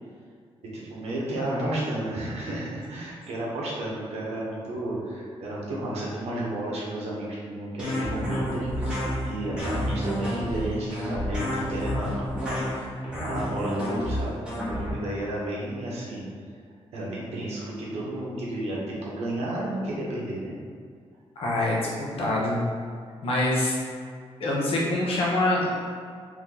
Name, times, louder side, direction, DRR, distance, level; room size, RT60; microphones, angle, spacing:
voice 1, 0.7-13.0 13.2-14.6 14.9-16.3 16.9-20.5, right 1 dB, 85° right, -5 dB, 1.2 m, -32 dB
voice 2, 1.4-1.8 21.4-21.9 22.2-22.6 23.2-23.8 24.4-25.8, left 1 dB, 65° left, -4 dB, 1.0 m, -25 dB
sound 1, 7.8-14.9, equal, 10° right, 1.3 m, -30 dB
4.5 x 2.8 x 4.0 m, 2.1 s
wide cardioid pair, 155°, 11 cm